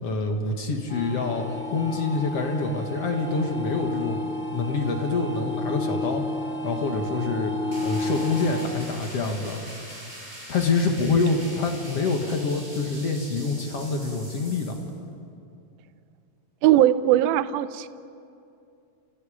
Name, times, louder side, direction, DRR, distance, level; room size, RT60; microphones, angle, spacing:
voice 1, 0.0-1.4 1.7-4.3 4.5-6.2 6.6-7.5 7.8-9.6 10.5-14.7, left 4 dB, 55° left, 3 dB, 1.7 m, -26 dB
sound 1, 0.9-8.7, left 1 dB, 30° left, 1.5 m, -31 dB
sound 2, 7.7-14.9, right 1 dB, 10° right, 5.9 m, -42 dB
voice 2, 16.6-17.9, right 13 dB, 85° right, 13 dB, 2.1 m, -19 dB
29.5 x 28.5 x 5.1 m, 2.5 s
omnidirectional pair, 5.1 m